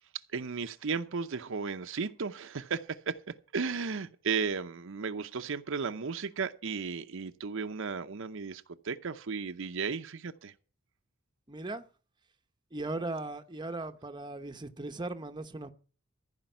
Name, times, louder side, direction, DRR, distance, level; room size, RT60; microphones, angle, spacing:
voice 1, 0.3-10.5, right 5 dB, 65° right, 0.7 m, -35 dB
voice 2, 11.5-11.8 12.7-15.7, right 2 dB, 20° right, 0.8 m, -38 dB
14.5 x 5.2 x 9.0 m
head